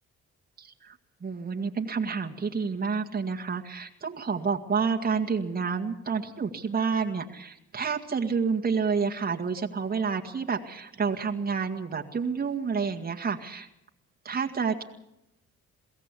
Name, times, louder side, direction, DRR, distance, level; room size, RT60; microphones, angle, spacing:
voice 1, 0.6-13.7 14.2-14.8, right 5 dB, 30° right, 2 dB, 1.9 m, -29 dB
22.5 x 16.5 x 8.3 m, 0.88 s
cardioid pair, 90°, 30 cm